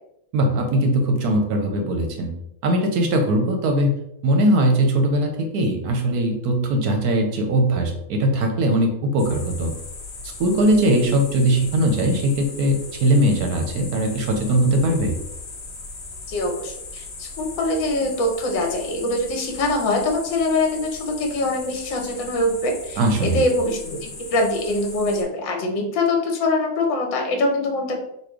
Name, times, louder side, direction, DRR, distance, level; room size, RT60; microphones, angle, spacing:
voice 1, 0.3-2.3 2.6-3.9 4.2-9.7 10.4-15.2 23.0-23.4, right 1 dB, 65° right, 4 dB, 1.0 m, -20 dB
sound 1, 9.2-25.2, left 3 dB, 45° left, 1.0 m, -38 dB
voice 2, 16.3-28.0, left 2 dB, 75° left, 2 dB, 1.6 m, -23 dB
4.2 x 2.5 x 4.8 m, 0.78 s
omnidirectional pair, 2.1 m